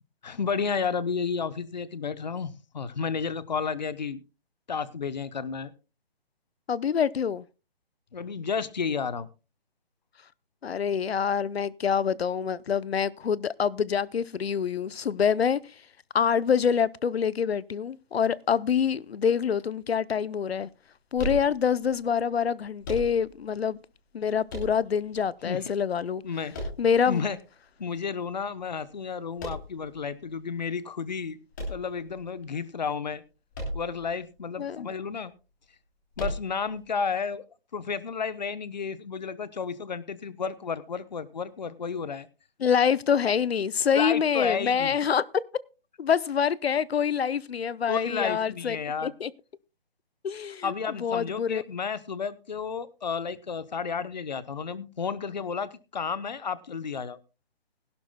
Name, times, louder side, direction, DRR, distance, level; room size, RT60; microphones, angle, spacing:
voice 1, 0.2-4.2 4.7-5.7 8.1-9.3 25.4-25.6 26.2-26.5 27.1-27.4 27.8-31.4 31.7-33.2 33.7-35.3 36.2-37.4 37.7-42.3 43.9-45.0 47.9-49.1 50.6-57.2, left 5 dB, 45° left, 0.8 m, -32 dB
voice 2, 6.7-7.4 10.6-15.9 16.1-20.7 21.1-23.8 24.1-26.2 26.8-27.2 34.6-34.9 42.6-45.2 46.0-48.8 49.0-49.3 50.2-50.7 51.0-51.6, left 7 dB, 80° left, 0.7 m, -26 dB
sound 1, 21.1-21.9 22.8-23.5 24.5-25.2 26.5-27.3 29.4-29.9 31.5-32.4 33.5-34.1 34.4-34.5 36.1-36.8, equal, 20° left, 3.0 m, -35 dB
21.0 x 11.5 x 2.2 m
hypercardioid pair, 175°, 30 cm